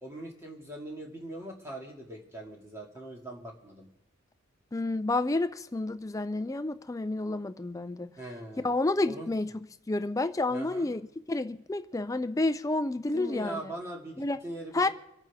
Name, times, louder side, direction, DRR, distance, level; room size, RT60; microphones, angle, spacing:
voice 1, 0.0-3.9 8.2-8.7 9.1-9.3 10.5-10.9 13.1-14.9, right 1 dB, 15° right, 2.0 m, -41 dB
voice 2, 4.7-8.1 8.6-11.0 11.3-13.7 14.2-14.4 14.7-14.9, left 2 dB, 15° left, 0.4 m, -30 dB
26.5 x 9.0 x 3.5 m
head